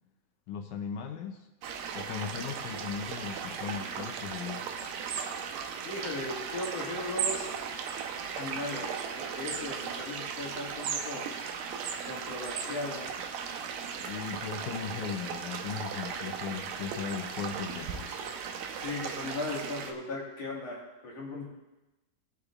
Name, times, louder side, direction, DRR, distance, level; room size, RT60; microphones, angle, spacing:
voice 1, 0.5-1.4 2.0-4.7 13.9-18.3, left 7 dB, 75° left, 6 dB, 1.9 m, -38 dB
sound 1, 1.6-19.9, right 6 dB, 80° right, 2.5 m, -37 dB
voice 2, 5.8-7.5 8.4-11.3 12.1-13.1 18.8-21.4, left 2 dB, 55° left, -3 dB, 2.7 m, -37 dB
20.5 x 8.2 x 2.4 m, 1.0 s
omnidirectional pair, 3.7 m